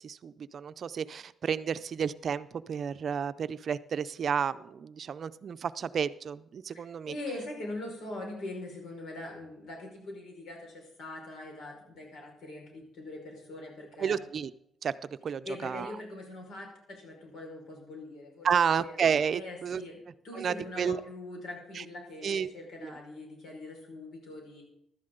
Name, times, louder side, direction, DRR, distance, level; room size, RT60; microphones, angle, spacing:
voice 1, 0.0-7.1 14.0-14.5 14.8-14.9 15.2-15.9 18.4-19.8 20.3-21.0 21.7-21.8 22.2-22.5 22.8-23.0, right 7 dB, 55° right, 14 dB, 0.5 m, -31 dB
voice 2, 6.7-14.3 15.4-19.0 19.3-24.6, left 2 dB, 70° left, 0 dB, 5.2 m, -42 dB
15.5 x 11.5 x 3.9 m, 0.74 s
cardioid pair, 90°, 0 cm